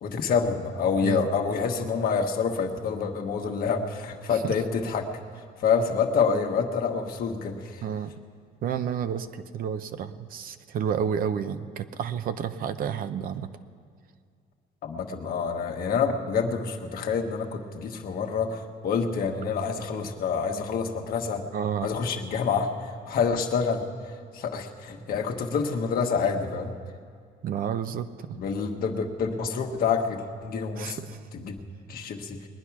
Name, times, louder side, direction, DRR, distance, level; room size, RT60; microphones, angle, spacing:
voice 1, 0.0-5.1 5.6-7.8 14.8-21.4 21.8-22.7 23.1-23.9 24.3-26.7 28.3-31.0 31.3-31.6 31.9-32.4, left 5 dB, 60° left, 4 dB, 1.4 m, -27 dB
voice 2, 7.8-8.1 8.6-13.5 21.5-21.9 27.4-28.4 30.8-31.3, right 8 dB, 60° right, 11 dB, 0.7 m, -30 dB
20.5 x 9.9 x 5.9 m, 2.2 s
cardioid pair, 110°, 17 cm